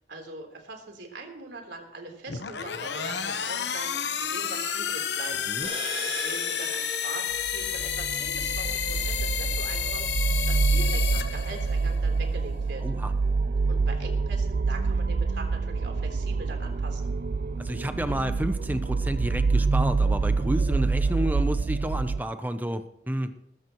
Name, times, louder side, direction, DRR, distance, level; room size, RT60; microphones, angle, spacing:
voice 1, 0.0-5.7 6.0-12.8 13.7-17.1, right 3 dB, 85° right, 2 dB, 3.5 m, -42 dB
sound 1, 2.3-12.0, left 8 dB, 75° left, 1.0 m, -31 dB
sound 2, 5.6-9.1, right 3 dB, 30° right, 6.9 m, -40 dB
sound 3, 7.4-22.2, right 4 dB, 55° right, 0.4 m, -26 dB
voice 2, 12.8-13.1 17.6-23.3, right 1 dB, 10° right, 9 dB, 0.6 m, -30 dB
20.5 x 14.0 x 3.0 m, 0.80 s
head